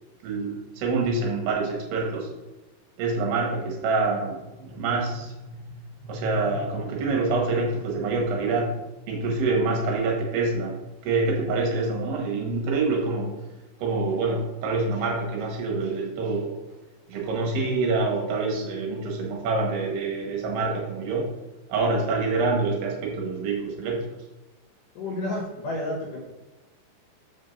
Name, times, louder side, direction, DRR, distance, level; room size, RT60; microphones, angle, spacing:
voice 1, 0.2-2.3 3.0-8.7 9.1-13.3 13.8-16.6 17.1-21.3 21.7-24.0, right 3 dB, 70° right, -1 dB, 3.3 m, -26 dB
voice 2, 25.0-26.2, left 1 dB, 65° left, -2 dB, 2.4 m, -30 dB
5.8 x 5.3 x 6.7 m, 1.1 s
omnidirectional pair, 5.0 m